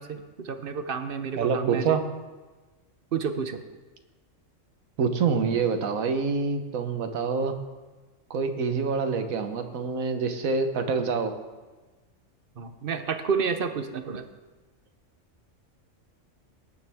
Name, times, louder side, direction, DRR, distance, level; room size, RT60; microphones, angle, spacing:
voice 1, 0.0-2.0 3.1-3.6 12.6-14.2, right 6 dB, 50° right, 9 dB, 0.9 m, -30 dB
voice 2, 1.4-2.0 5.0-7.6 8.3-11.3, right 5 dB, 85° right, 7 dB, 1.4 m, -26 dB
19.0 x 9.8 x 3.5 m, 1.3 s
omnidirectional pair, 1.4 m